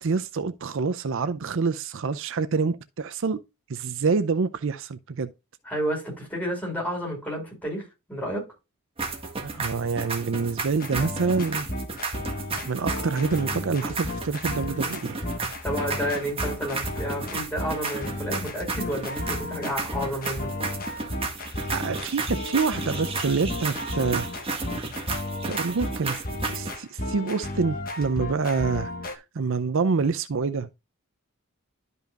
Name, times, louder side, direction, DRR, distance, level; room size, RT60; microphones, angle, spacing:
voice 1, 0.0-3.4 3.7-5.3 9.4-11.7 12.0-12.1 12.6-15.2 21.7-24.3 25.5-26.2 26.5-30.7, right 4 dB, 60° right, 0.5 m, -27 dB
voice 2, 5.7-8.5 15.6-20.5, equal, 10° left, 4.9 m, -31 dB
sound 1, 9.0-26.8, right 3 dB, 25° right, 1.7 m, -33 dB
sound 2, 10.7-29.2, left 1 dB, 45° left, 1.3 m, -34 dB
12.0 x 5.5 x 2.4 m
head